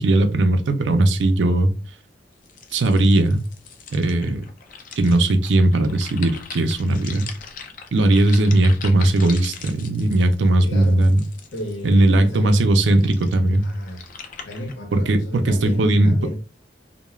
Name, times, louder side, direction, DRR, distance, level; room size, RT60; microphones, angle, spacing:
voice 1, 0.0-1.7 2.7-3.4 3.9-4.4 5.0-7.3 7.9-11.2 11.8-13.7 14.9-16.2, right 1 dB, 85° right, 0.5 m, -18 dB
sound 1, 2.4-12.1 12.7-14.7, left 6 dB, 50° left, 0.4 m, -40 dB
voice 2, 10.6-11.1 11.5-12.6 13.6-14.0 14.4-16.3, left 1 dB, 90° left, 0.8 m, -32 dB
2.3 x 2.1 x 3.1 m
head